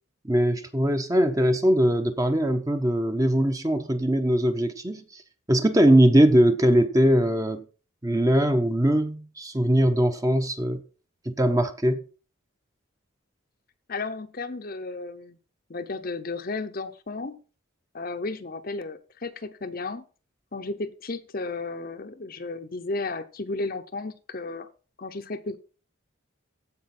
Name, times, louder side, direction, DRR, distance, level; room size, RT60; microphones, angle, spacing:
voice 1, 0.2-5.2 5.5-7.6 8.0-10.8 11.2-12.0, equal, 15° right, 0.8 m, -21 dB
voice 2, 13.9-15.4 15.7-17.4 17.9-20.0 20.5-24.7 25.0-25.6, left 3 dB, 45° left, 0.8 m, -33 dB
15.5 x 5.2 x 4.3 m
head